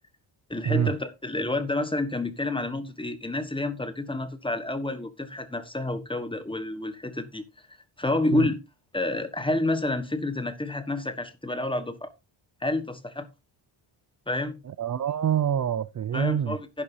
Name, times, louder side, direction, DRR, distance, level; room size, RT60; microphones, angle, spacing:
voice 1, 0.5-7.4 7.7-8.6 8.9-12.1 12.6-13.3 14.3-14.6 16.1-16.8, left 2 dB, 10° left, 1.4 m, -29 dB
voice 2, 14.8-16.6, right 9 dB, 40° right, 0.5 m, -26 dB
11.0 x 10.5 x 2.8 m
wide cardioid pair, 135°, 50 cm